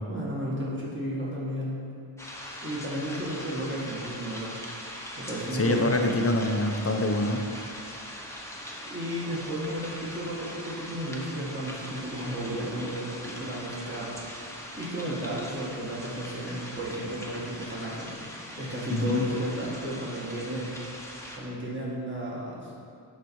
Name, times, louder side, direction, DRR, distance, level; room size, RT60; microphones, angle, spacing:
voice 1, 0.1-1.8 2.6-4.6 5.2-5.9 8.9-14.1 14.5-18.1 18.6-20.8 21.3-22.7, right 1 dB, 25° right, -6 dB, 2.0 m, -33 dB
sound 1, 2.2-21.4, left 1 dB, 5° left, 1.1 m, -41 dB
voice 2, 5.5-7.4 18.9-19.3, left 2 dB, 30° left, 3 dB, 0.8 m, -25 dB
11.5 x 4.2 x 4.7 m, 2.4 s
wide cardioid pair, 85°, 45 cm